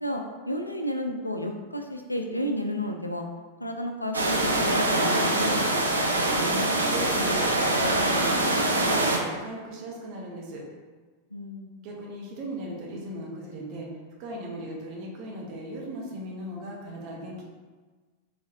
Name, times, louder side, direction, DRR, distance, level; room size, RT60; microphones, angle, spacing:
voice 1, 0.0-3.2 3.6-5.6 11.3-11.7, equal, 85° left, 4 dB, 0.4 m, -31 dB
sound 1, 4.1-9.2, right 1 dB, 80° right, 0.6 m, -24 dB
voice 2, 5.9-10.6 11.8-17.4, right 1 dB, 40° right, -2 dB, 1.1 m, -38 dB
5.6 x 3.1 x 2.9 m, 1.4 s
figure-of-eight pair, 90°, 0 cm